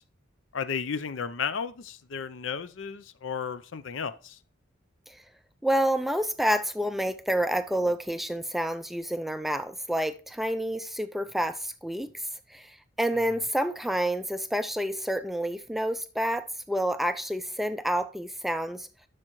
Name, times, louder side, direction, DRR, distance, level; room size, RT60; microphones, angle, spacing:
voice 1, 0.5-4.4, left 6 dB, 70° left, 0.6 m, -33 dB
voice 2, 5.6-18.9, equal, ahead, 0.3 m, -29 dB
11.0 x 6.6 x 3.1 m
head